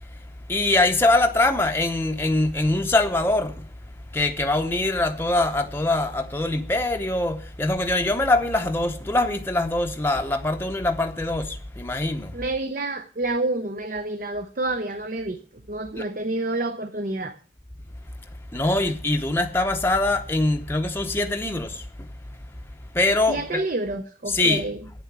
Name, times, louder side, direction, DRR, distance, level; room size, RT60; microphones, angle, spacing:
voice 1, 0.5-3.7 4.1-12.3 16.0-16.1 18.5-21.9 22.9-23.6 24.3-24.6, left 2 dB, 15° left, 0.7 m, -23 dB
voice 2, 12.3-15.4 15.7-17.4 23.3-24.8, right 2 dB, 50° right, 0.8 m, -28 dB
9.4 x 7.1 x 8.7 m
head